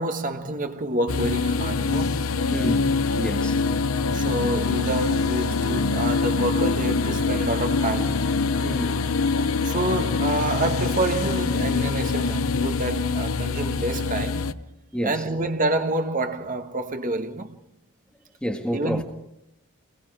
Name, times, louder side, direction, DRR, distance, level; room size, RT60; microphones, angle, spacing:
voice 1, 0.0-2.3 4.0-8.3 9.7-14.6 15.0-17.6 18.7-19.0, right 2 dB, 40° right, 1.5 m, -28 dB
sound 1, 1.1-14.5, left 4 dB, 65° left, 0.8 m, -24 dB
voice 2, 2.5-2.9 3.2-3.6 8.6-8.9 14.9-15.2 18.4-19.0, equal, 5° left, 1.7 m, -28 dB
28.0 x 21.5 x 4.9 m
head